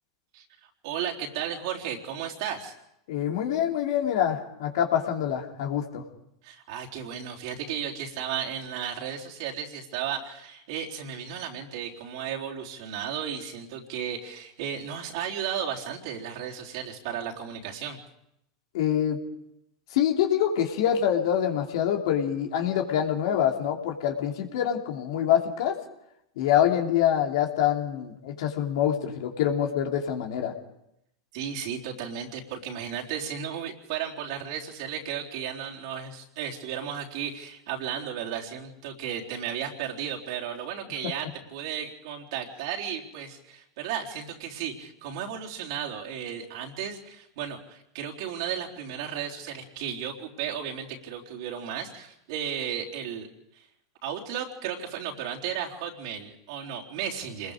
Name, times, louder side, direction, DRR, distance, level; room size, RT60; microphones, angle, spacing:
voice 1, 0.8-2.7 6.4-18.0 31.3-53.3 53.5-53.6 54.0-57.5, right 8 dB, 65° right, -1 dB, 3.8 m, -34 dB
voice 2, 3.1-6.0 18.7-19.2 19.9-25.8 26.4-30.5, left 10 dB, 65° left, 3 dB, 3.0 m, -25 dB
27.0 x 21.0 x 5.1 m, 0.81 s
hypercardioid pair, 100°, 3 cm